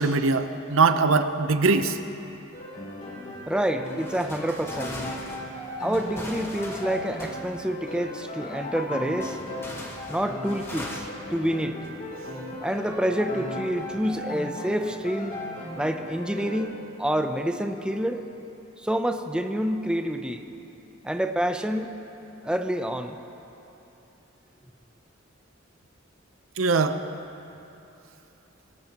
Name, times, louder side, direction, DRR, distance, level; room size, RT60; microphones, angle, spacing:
voice 1, 0.0-2.0 26.6-27.0, right 4 dB, 85° right, 9 dB, 0.7 m, -21 dB
sound 1, 2.5-16.6, left 1 dB, 40° left, 3.1 m, -37 dB
voice 2, 3.5-5.0 5.8-9.4 10.1-11.8 12.6-15.4 15.8-18.2 18.8-20.5 21.0-21.9 22.4-23.2, equal, 5° right, 6 dB, 0.6 m, -28 dB
sound 2, 3.8-7.9 9.2-12.3 12.7-12.8 13.8-14.2, left 1 dB, 15° left, 1.5 m, -41 dB
23.0 x 18.0 x 3.0 m, 3.0 s
head